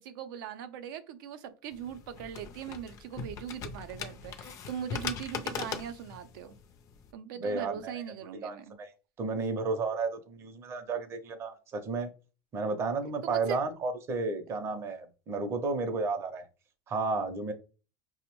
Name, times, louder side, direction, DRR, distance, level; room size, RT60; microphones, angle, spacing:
voice 1, 0.0-6.6 7.1-8.7 13.2-13.6, right 9 dB, 85° right, 0.5 m, -40 dB
sound 1, 1.7-7.1, left 6 dB, 30° left, 0.4 m, -40 dB
voice 2, 7.4-7.9 8.4-8.9 9.2-12.1 12.5-16.5 16.9-17.5, right 3 dB, 25° right, 0.5 m, -32 dB
5.0 x 2.0 x 2.9 m
cardioid pair, 160°, 11 cm